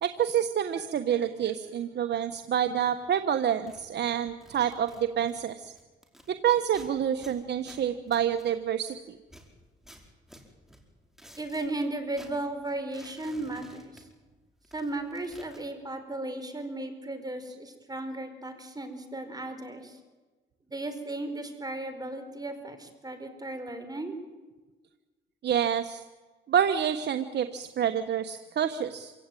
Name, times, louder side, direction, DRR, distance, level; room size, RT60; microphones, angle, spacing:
voice 1, 0.0-5.7 6.3-9.2 25.4-26.0 26.5-29.1, right 9 dB, 60° right, 8 dB, 1.3 m, -28 dB
sound 1, 3.5-6.3 6.7-8.9 9.2-11.9 12.1-14.4 14.6-15.6, equal, ahead, 4.9 m, -53 dB
voice 2, 11.4-14.0 14.7-20.0 20.7-24.2, right 2 dB, 20° right, 7 dB, 4.5 m, -35 dB
27.0 x 17.0 x 9.2 m, 1.3 s
cardioid pair, 90°, 20 cm